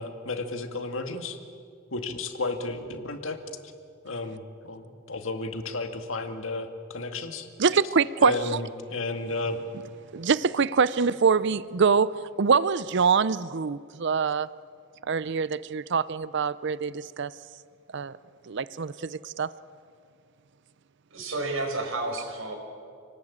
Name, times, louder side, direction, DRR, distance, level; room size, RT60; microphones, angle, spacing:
voice 1, 0.0-1.4 1.9-3.4 4.0-7.5 8.2-9.6, left 3 dB, 70° left, 6 dB, 2.1 m, -32 dB
voice 2, 7.6-8.3 10.1-14.5 15.0-17.3 17.9-18.1 18.5-19.5, right 5 dB, 60° right, 17 dB, 0.5 m, -24 dB
voice 3, 21.1-22.5, right 2 dB, 80° right, 1 dB, 5.6 m, -31 dB
28.5 x 19.5 x 8.7 m, 2.3 s
head